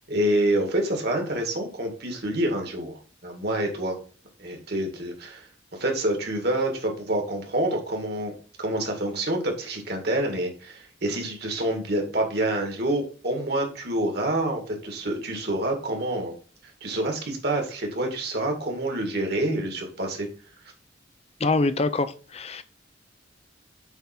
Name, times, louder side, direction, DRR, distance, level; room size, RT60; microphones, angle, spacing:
voice 1, 0.1-4.0 4.4-5.5 5.8-16.3 16.8-20.3, right 1 dB, 55° right, 2.0 m, -27 dB
voice 2, 21.4-22.6, left 3 dB, 35° left, 0.6 m, -25 dB
8.0 x 3.5 x 4.3 m
head